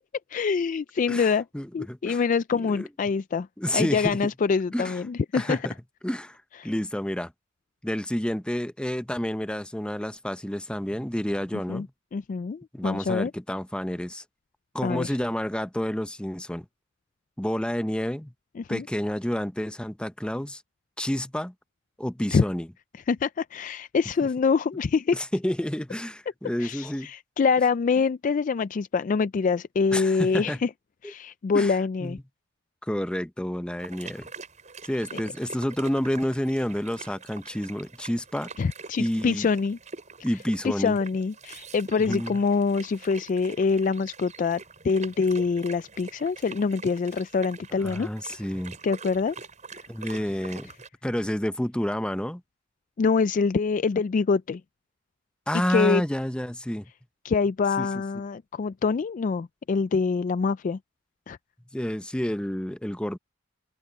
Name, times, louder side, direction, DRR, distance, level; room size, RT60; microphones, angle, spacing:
voice 1, 0.3-1.4 1.7-3.5 3.7-5.6 6.6-6.7 11.5-11.9 12.1-13.3 14.8-15.1 18.6-18.8 22.3-22.4 23.1-25.2 26.6-30.7 31.0-32.2 38.6-39.8 40.6-44.6 44.8-48.1 48.8-49.4 53.0-54.6 55.7-56.0 57.2-60.8 61.3-61.4, left 5 dB, 40° left, 0.3 m, -25 dB
voice 2, 1.1-2.2 2.5-2.9 3.6-4.2 4.7-5.0 5.3-5.7 6.0-7.3 7.8-11.9 12.7-14.2 14.7-16.7 17.4-18.3 18.7-20.6 21.0-21.5 22.0-22.7 24.2-24.3 25.1-27.1 29.9-30.6 31.0-31.1 31.5-32.2 32.8-34.3 34.8-38.5 39.0-39.5 40.2-41.0 42.0-42.4 47.8-48.8 49.9-50.7 51.0-52.4 55.5-56.9 57.8-57.9 61.7-63.2, equal, 5° left, 0.6 m, -29 dB
sound 1, 33.8-50.9, right 4 dB, 40° right, 7.8 m, -44 dB
head